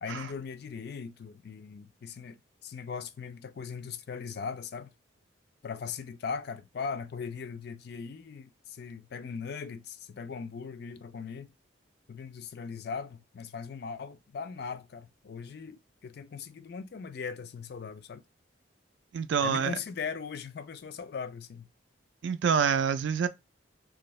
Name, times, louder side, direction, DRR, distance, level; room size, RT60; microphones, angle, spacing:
voice 1, 0.0-2.4 2.6-4.9 5.6-11.5 12.1-18.2 19.4-21.7, left 5 dB, 55° left, 0.3 m, -39 dB
voice 2, 19.1-19.8 22.2-23.3, right 6 dB, 65° right, 0.3 m, -27 dB
2.6 x 2.4 x 3.1 m
head